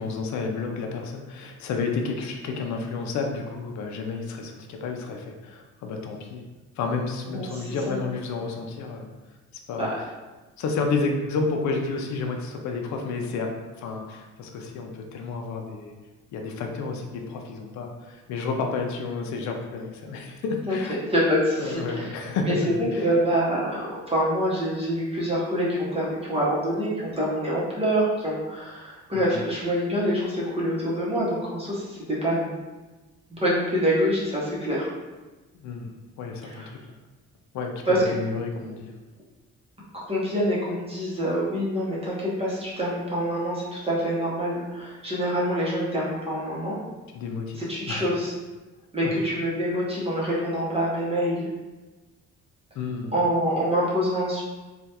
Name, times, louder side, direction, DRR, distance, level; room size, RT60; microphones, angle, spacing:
voice 1, 0.0-6.4 6.8-9.1 9.7-10.1 10.6-15.9 16.3-21.0 21.5-22.6 22.9-23.1 29.1-29.5 35.5-35.9 36.2-36.8 37.5-38.9 47.1-48.1 49.0-49.1 52.7-53.2, left 4 dB, 65° left, 2 dB, 0.5 m, -31 dB
voice 2, 7.3-7.9 9.8-9.9 20.7-20.8 21.1-22.1 22.5-22.6 23.0-32.6 33.3-34.9 36.5-36.7 37.9-38.1 40.1-46.8 47.6-48.3 48.9-51.5 53.1-54.4, equal, 20° right, -7 dB, 0.8 m, -26 dB
3.3 x 2.3 x 2.8 m, 1.2 s
cardioid pair, 120°, 30 cm